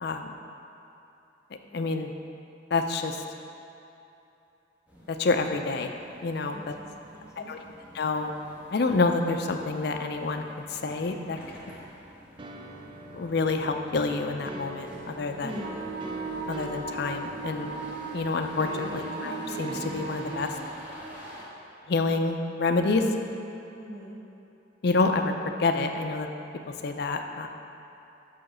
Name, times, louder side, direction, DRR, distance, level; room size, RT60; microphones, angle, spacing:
voice 1, 1.7-2.1 2.7-3.2 5.1-5.9 6.2-6.7 7.4-7.6 7.9-8.3 8.7-10.4 10.7-11.4 13.1-15.5 16.5-17.7 18.1-20.5 21.9-23.0 24.8-25.3 25.6-26.3 26.8-27.5, left 3 dB, 60° left, 5 dB, 0.5 m, -27 dB
sound 1, 4.9-21.4, equal, 10° right, 1.3 m, -47 dB
voice 2, 6.5-7.7 15.4-15.8 18.8-19.2 23.7-24.2, right 1 dB, 15° left, -4 dB, 0.9 m, -43 dB
sound 2, 12.4-20.7, equal, 25° right, 0.4 m, -42 dB
Wind instrument woodwind instrument, 15.6-20.7, right 5 dB, 90° right, 1.3 m, -38 dB
5.7 x 5.1 x 6.1 m, 2.9 s
head